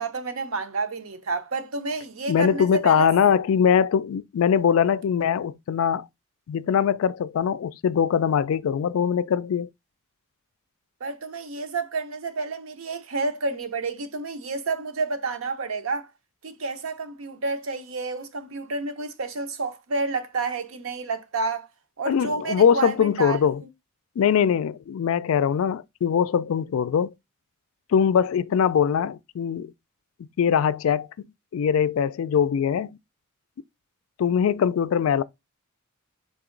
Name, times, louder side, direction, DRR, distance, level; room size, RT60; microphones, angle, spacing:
voice 1, 0.0-3.1 11.0-16.1 16.4-21.7 22.0-23.6, right 3 dB, 70° right, 0.7 m, -30 dB
voice 2, 2.3-6.0 6.5-9.7 22.1-23.6 24.2-27.1 27.9-29.7 30.4-31.3 31.5-33.0 34.2-35.2, left 7 dB, 70° left, 0.3 m, -22 dB
4.0 x 2.9 x 3.7 m
head